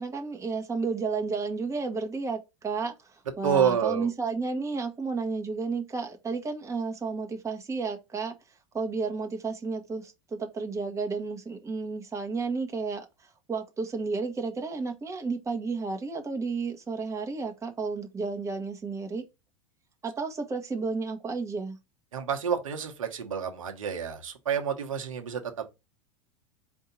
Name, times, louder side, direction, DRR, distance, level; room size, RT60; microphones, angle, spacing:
voice 1, 0.0-2.9 3.4-8.3 8.7-13.1 13.5-19.2 20.0-21.8, right 4 dB, 20° right, 1.1 m, -32 dB
voice 2, 3.4-4.1 22.1-25.7, right 7 dB, 80° right, 1.0 m, -28 dB
4.5 x 2.7 x 3.9 m
hypercardioid pair, 90°, 17 cm